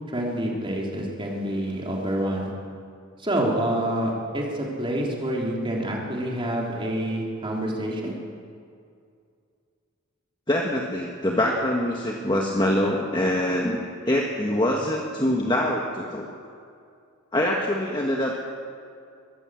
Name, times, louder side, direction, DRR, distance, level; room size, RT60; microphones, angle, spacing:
voice 1, 0.1-2.5 3.2-8.2, right 1 dB, 25° right, -2 dB, 3.5 m, -27 dB
voice 2, 10.5-13.8 14.0-16.3 17.3-18.4, left 1 dB, 20° left, -1 dB, 1.4 m, -24 dB
22.5 x 15.0 x 7.7 m, 2.3 s
head